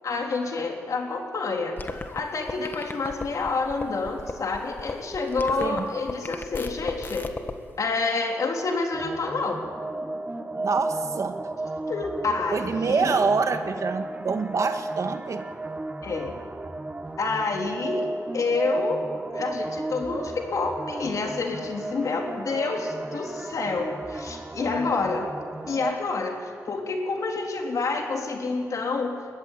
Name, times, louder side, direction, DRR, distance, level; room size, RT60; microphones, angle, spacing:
voice 1, 0.0-1.8 2.1-7.3 7.8-9.6 11.9-13.2 16.0-16.3 17.2-18.1 18.3-25.3 25.7-29.2, left 3 dB, 65° left, 1 dB, 3.6 m, -28 dB
sound 1, 1.8-7.5, left 2 dB, 35° left, 1.7 m, -37 dB
voice 2, 5.6-5.9 10.6-11.4 12.5-15.5, right 4 dB, 60° right, 7 dB, 1.7 m, -26 dB
sound 2, 8.9-25.9, right 2 dB, 25° right, 1.3 m, -34 dB
21.0 x 14.5 x 9.9 m, 2.1 s
cardioid pair, 65°, 6 cm